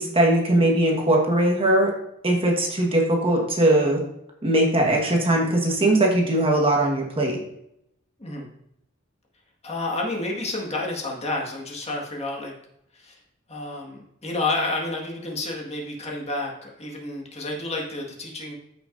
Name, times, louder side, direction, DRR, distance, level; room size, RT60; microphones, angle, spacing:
voice 1, 0.0-1.9 2.2-4.0 4.4-7.4, right 1 dB, 25° right, 0 dB, 1.4 m, -20 dB
voice 2, 8.2-8.5 9.6-12.5 12.9-13.2 13.5-18.5, left 2 dB, 30° left, -1 dB, 1.7 m, -30 dB
13.5 x 6.0 x 2.6 m, 0.78 s
head